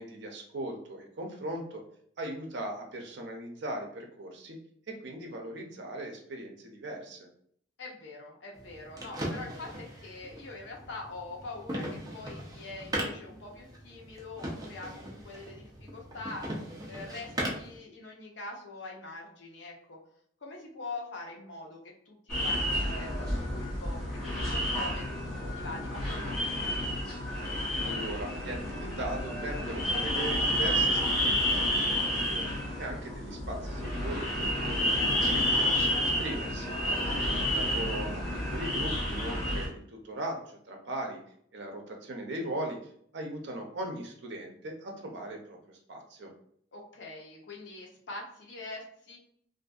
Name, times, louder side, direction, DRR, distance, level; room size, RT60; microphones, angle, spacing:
voice 1, 0.0-1.8 2.2-4.6 4.9-7.3 27.8-34.3 34.6-36.7 37.4-41.2 41.5-42.8 43.1-46.3, right 1 dB, 65° right, 2 dB, 0.6 m, -39 dB
voice 2, 7.8-16.5 16.9-20.0 20.4-26.7 36.8-37.6 46.7-49.2, left 3 dB, 70° left, 0 dB, 0.7 m, -44 dB
sound 1, 8.5-17.8, right 1 dB, 20° right, 0.5 m, -39 dB
wind in room, 22.3-39.7, equal, 5° left, 1.1 m, -30 dB
2.6 x 2.5 x 2.4 m, 0.65 s
head